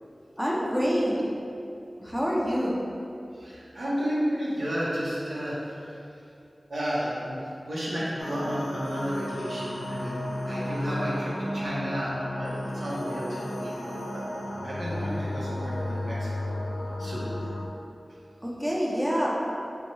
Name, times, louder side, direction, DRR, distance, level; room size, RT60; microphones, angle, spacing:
voice 1, 0.4-1.3 2.0-2.8 18.4-19.3, equal, 5° right, -4 dB, 0.5 m, -26 dB
voice 2, 3.3-5.8 6.7-14.2 14.6-16.6 17.0-17.3, equal, 80° right, -8 dB, 0.9 m, -32 dB
sound 1, 8.2-17.7, left 1 dB, 90° left, 0.3 m, -33 dB
4.1 x 2.2 x 3.0 m, 2.6 s
wide cardioid pair, 50°, 0 cm